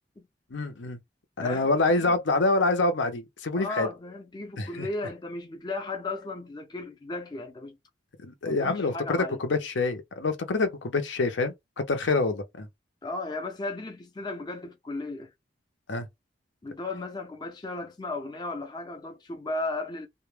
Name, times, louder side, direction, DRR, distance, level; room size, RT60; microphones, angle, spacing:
voice 1, 0.5-1.0 1.4-3.9 4.6-4.9 8.2-12.7 15.9-16.1, left 3 dB, 75° left, 0.6 m, -26 dB
voice 2, 1.4-2.2 3.6-7.8 8.4-9.4 13.0-15.3 16.6-20.1, left 2 dB, 25° left, 0.5 m, -35 dB
2.1 x 2.1 x 3.1 m
head